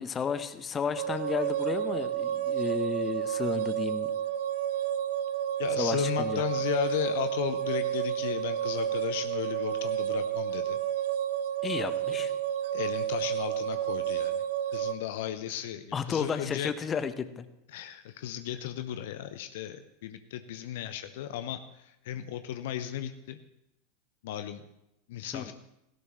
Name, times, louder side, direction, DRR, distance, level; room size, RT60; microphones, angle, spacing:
voice 1, 0.0-4.1 5.8-6.4 11.6-12.3 15.9-17.5 25.3-25.5, left 6 dB, 25° left, 11 dB, 1.1 m, -32 dB
sound 1, 1.0-14.9, right 10 dB, 55° right, 0.8 m, -30 dB
voice 2, 5.6-10.8 12.7-14.4 14.7-16.7 17.7-23.4 24.2-24.6 25.1-25.5, left 11 dB, 55° left, 10 dB, 0.8 m, -35 dB
17.5 x 17.0 x 3.2 m, 0.84 s
figure-of-eight pair, 85°, 0 cm